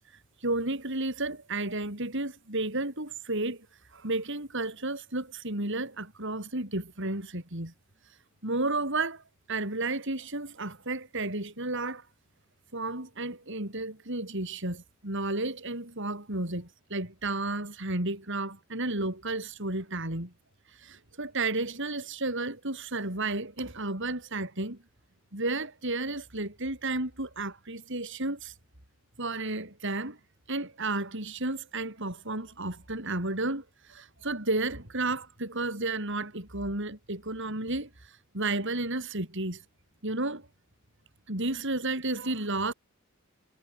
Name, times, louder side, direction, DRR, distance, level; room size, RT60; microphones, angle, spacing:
voice 1, 0.4-3.7 3.9-7.7 8.4-9.2 9.5-12.1 12.7-20.3 20.7-24.8 25.3-28.5 29.2-30.2 30.5-39.6 40.0-40.5 41.3-42.7, right 2 dB, 60° right, 6.2 m, -32 dB
head